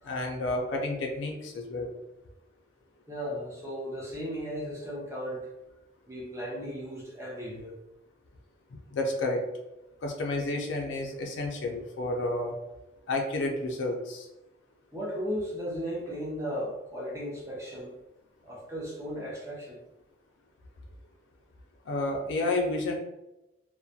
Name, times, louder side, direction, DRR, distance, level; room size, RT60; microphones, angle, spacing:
voice 1, 0.0-1.9 8.9-9.4 10.0-12.6 13.1-14.3 21.9-23.0, left 2 dB, 80° left, 1 dB, 0.4 m, -30 dB
voice 2, 3.1-5.5 6.1-7.8 14.9-17.9 18.4-19.8, equal, 15° right, -4 dB, 0.6 m, -36 dB
2.3 x 2.1 x 2.6 m, 0.96 s
head